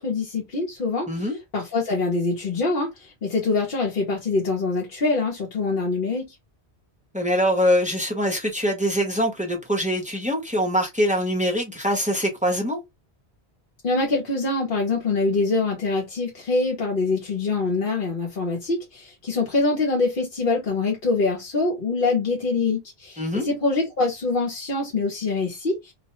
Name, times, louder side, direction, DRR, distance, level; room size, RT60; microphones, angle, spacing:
voice 1, 0.0-1.1 1.5-6.3 13.8-25.9, left 3 dB, 55° left, 0.9 m, -24 dB
voice 2, 1.1-1.4 7.1-12.8 23.2-23.5, equal, 10° right, 0.6 m, -23 dB
2.4 x 2.1 x 2.8 m
omnidirectional pair, 1.1 m